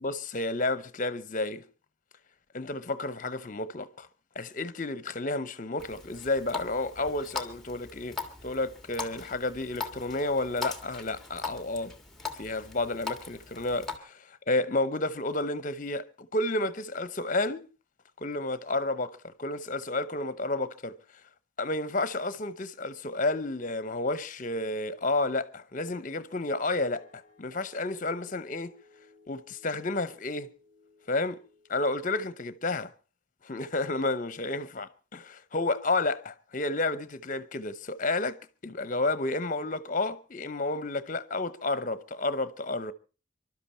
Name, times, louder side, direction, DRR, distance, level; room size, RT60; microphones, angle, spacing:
voice 1, 0.0-1.7 2.5-4.1 4.4-11.9 12.4-17.7 18.2-21.0 21.6-28.7 29.3-30.5 31.1-31.4 31.7-32.9 33.4-42.9, left 2 dB, 40° left, 0.9 m, -31 dB
Water tap faucet, 5.8-14.0, left 5 dB, ahead, 1.6 m, -40 dB
sound 1, 26.9-32.4, left 3 dB, 25° left, 3.1 m, -60 dB
25.5 x 12.0 x 4.3 m
head